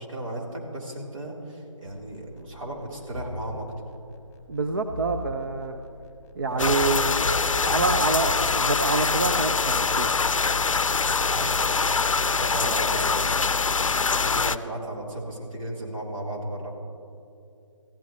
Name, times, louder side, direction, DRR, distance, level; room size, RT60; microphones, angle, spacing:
voice 1, 0.0-3.8 6.5-7.4 11.3-13.3 14.2-16.7, right 1 dB, 80° right, -3 dB, 3.4 m, -35 dB
sound 1, 1.9-8.7, left 4 dB, 30° left, 1.4 m, -40 dB
voice 2, 4.5-5.8 6.4-7.2 7.6-10.1, right 3 dB, 40° right, 5 dB, 0.6 m, -26 dB
sound 2, 6.6-14.6, left 4 dB, 75° left, 0.5 m, -24 dB
20.0 x 15.0 x 3.1 m, 2.6 s
figure-of-eight pair, 160°, 17 cm